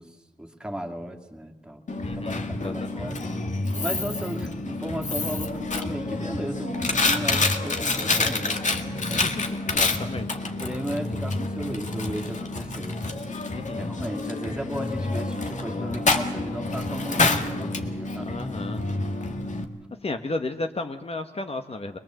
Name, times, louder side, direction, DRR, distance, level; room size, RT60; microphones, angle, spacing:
voice 1, 0.0-1.8 2.1-2.3 2.6-3.2 3.8-8.6 9.1-9.3 9.7-9.8 10.4-13.0 13.8-18.4, right 1 dB, 5° right, 3 dB, 2.4 m, -35 dB
Coin (dropping), 1.9-19.6, left 3 dB, 60° left, 1.9 m, -28 dB
voice 2, 2.0-3.1 9.1-9.5 9.7-10.4 13.5-14.0 18.2-19.0 20.0-22.0, left 2 dB, 45° left, 6 dB, 1.2 m, -34 dB
22.5 x 21.0 x 7.7 m, 1.2 s
wide cardioid pair, 70°, 14 cm